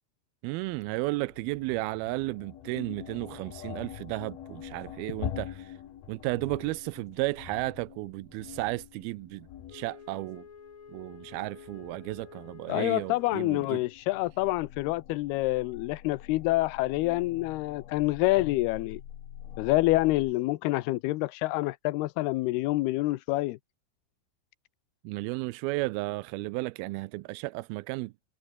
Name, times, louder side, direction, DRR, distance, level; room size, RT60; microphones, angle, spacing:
voice 1, 0.4-5.8 6.1-10.4 10.9-13.8 25.0-28.1, right 21 dB, 80° right, 2.4 m, -33 dB
sound 1, 0.6-20.3, left 10 dB, 75° left, 3.9 m, -45 dB
Wind instrument woodwind instrument, 9.7-13.9, left 6 dB, 40° left, 2.8 m, -50 dB
voice 2, 12.7-19.0 19.6-23.6, left 19 dB, 90° left, 2.8 m, -27 dB
omnidirectional pair, 4.4 m